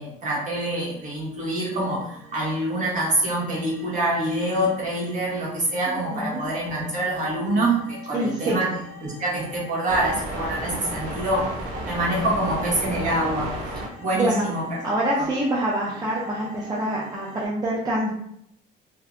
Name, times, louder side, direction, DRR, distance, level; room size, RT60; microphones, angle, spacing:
voice 1, 0.0-2.1 2.3-8.7 9.0-11.5 11.8-13.5 14.0-14.8 15.2-15.3, right 1 dB, 45° right, -5 dB, 1.1 m, -25 dB
sound 1, 1.7-17.5, right 1 dB, 75° right, 0.7 m, -37 dB
voice 2, 6.1-6.4 8.1-8.7 14.2-14.5 14.8-18.1, right 1 dB, 25° right, -5 dB, 0.5 m, -25 dB
2.6 x 2.1 x 2.5 m, 0.74 s
cardioid pair, 110°, 17 cm